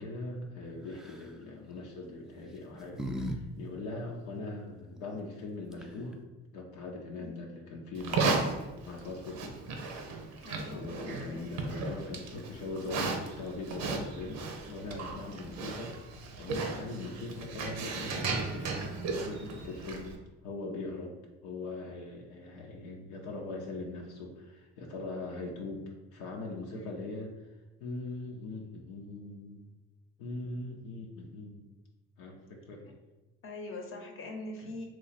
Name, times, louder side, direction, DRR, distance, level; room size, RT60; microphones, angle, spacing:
voice 1, 0.0-6.2 6.5-8.6 8.9-9.6 10.7-16.0 16.4-18.8 19.1-20.1 20.4-27.3 27.8-29.7 30.2-31.7 32.2-32.9, left 2 dB, 80° left, -1 dB, 0.6 m, -41 dB
sound 1, 0.9-1.3 2.3-3.4 3.7-3.8 5.4-5.5 5.7-6.1, equal, ahead, 0.4 m, -38 dB
Livestock farm animals working animals, 7.9-20.1, right 4 dB, 65° right, 0.7 m, -35 dB
voice 2, 10.4-11.5 26.7-27.0 32.8-32.9 33.4-34.9, left 1 dB, 45° left, 3 dB, 0.8 m, -43 dB
3.0 x 2.3 x 4.0 m, 1.1 s
supercardioid pair, 65°, 31 cm